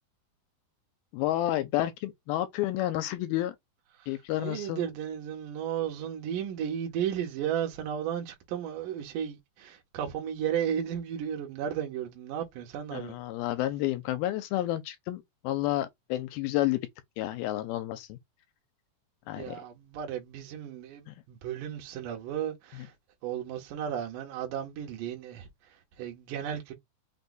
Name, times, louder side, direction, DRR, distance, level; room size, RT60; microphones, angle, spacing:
voice 1, 1.1-3.6 4.1-4.9 12.9-16.8 17.2-18.2 19.3-19.6 21.1-21.2, left 14 dB, 85° left, 2.4 m, -30 dB
voice 2, 4.4-13.2 19.3-22.9 23.2-26.7, right 9 dB, 70° right, 2.3 m, -34 dB
5.8 x 2.2 x 3.9 m
omnidirectional pair, 4.3 m